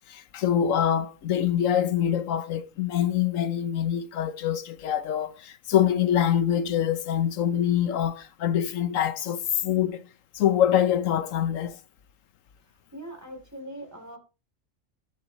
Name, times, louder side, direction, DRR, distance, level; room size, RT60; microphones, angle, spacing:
voice 1, 0.1-10.1 10.3-11.8, left 10 dB, 85° left, 1.2 m, -25 dB
voice 2, 12.9-14.2, right 1 dB, 15° right, 3.0 m, -41 dB
18.5 x 7.2 x 3.0 m
omnidirectional pair, 1.3 m